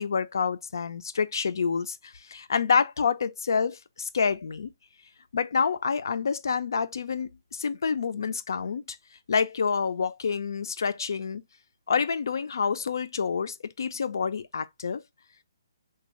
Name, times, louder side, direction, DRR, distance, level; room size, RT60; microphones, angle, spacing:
voice 1, 0.0-4.7 5.3-9.0 9.3-11.4 11.9-15.0, left 6 dB, 65° left, 0.4 m, -28 dB
3.5 x 2.4 x 2.9 m
hypercardioid pair, 160°, 2 cm